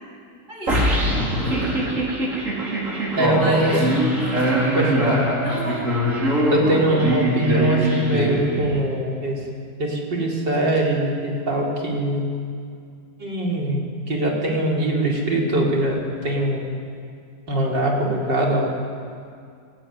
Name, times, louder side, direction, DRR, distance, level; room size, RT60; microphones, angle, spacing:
voice 1, 0.5-1.0 1.4-1.8 3.0-3.9 4.2-4.7 5.4-5.9, right 1 dB, 25° right, -3 dB, 8.2 m, -32 dB
sound 1, 0.7-9.0, right 1 dB, 45° right, 4.3 m, -22 dB
voice 2, 3.2-3.9 4.7-5.2 6.5-9.4 9.8-12.3 13.2-16.7 17.5-18.7, right 1 dB, 70° right, -2 dB, 5.1 m, -22 dB
29.5 x 17.0 x 9.6 m, 2.3 s
omnidirectional pair, 2.0 m